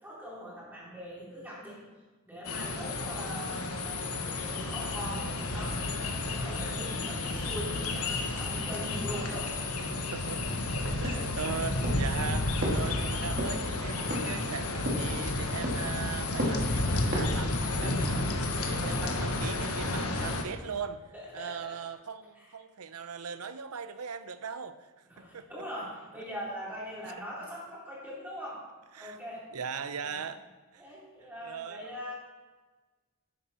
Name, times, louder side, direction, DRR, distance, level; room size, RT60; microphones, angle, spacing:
voice 1, 0.0-1.8 2.3-9.5 10.0-10.1 10.8-11.5 18.6-19.2 21.1-21.8 22.4-22.5 25.1-28.7 29.0-29.5 30.0-30.2 30.8-32.1, equal, 10° right, -7 dB, 3.8 m, -42 dB
sound 1, 2.4-20.4, left 2 dB, 85° left, 1.4 m, -31 dB
voice 2, 10.1-10.4 10.7-21.0 21.3-24.9 25.2-25.5 28.9-29.2 29.5-30.5 30.7-30.9 31.2-32.1, right 6 dB, 90° right, 12 dB, 0.7 m, -39 dB
sound 2, 11.0-11.5 11.8-12.1 12.6-12.9 13.4-13.6 14.1-14.4 14.9-15.2 15.6-15.9 16.4-16.7 17.1-17.4 17.8-18.2, equal, 50° right, 2.6 m, -33 dB
11.5 x 10.0 x 4.4 m, 1.3 s
head